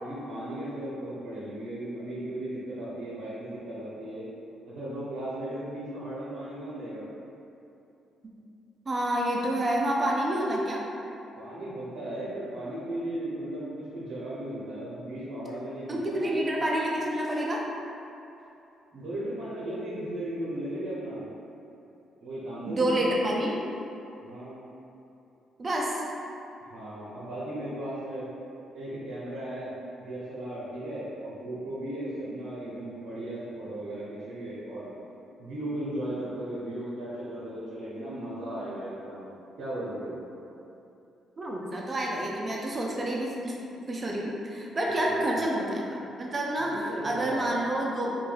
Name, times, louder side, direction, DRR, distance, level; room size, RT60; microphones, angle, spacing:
voice 1, 0.0-4.2 4.6-7.1 11.3-16.6 18.9-21.2 22.2-23.1 24.2-24.7 26.7-28.3 28.7-29.7 30.0-34.9 35.4-39.3 39.6-40.2 44.9-45.3 46.6-47.7, right 1 dB, 70° right, -10 dB, 0.7 m, -36 dB
voice 2, 8.9-10.8 15.9-17.6 22.7-23.6 25.6-26.0 41.4-43.5 43.9-48.1, right 1 dB, 30° right, -2 dB, 0.5 m, -28 dB
2.6 x 2.2 x 3.2 m, 2.8 s
cardioid pair, 90°, 0 cm